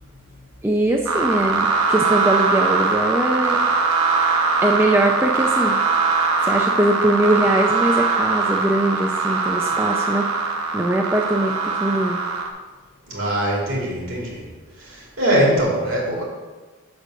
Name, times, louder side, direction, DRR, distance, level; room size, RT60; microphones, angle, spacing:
voice 1, 0.6-3.6 4.6-5.8 6.4-10.3 10.7-12.2, right 1 dB, 10° right, 0 dB, 0.4 m, -21 dB
sound 1, 1.1-12.5, right 4 dB, 90° right, 0.9 m, -21 dB
voice 2, 13.1-14.4 14.8-16.2, right 1 dB, 70° right, -4 dB, 2.6 m, -22 dB
6.1 x 5.2 x 6.4 m, 1.2 s
head